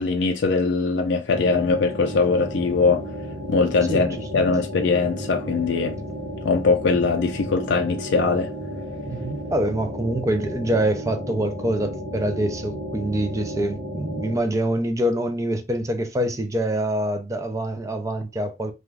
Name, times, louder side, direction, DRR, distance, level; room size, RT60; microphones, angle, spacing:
voice 1, 0.0-3.0 3.5-5.9 6.4-8.5, left 4 dB, 70° left, 0.4 m, -21 dB
sound 1, 1.3-14.4, equal, 80° right, 0.8 m, -33 dB
voice 2, 9.1-18.7, right 1 dB, 15° right, 0.4 m, -25 dB
2.4 x 2.3 x 3.2 m
head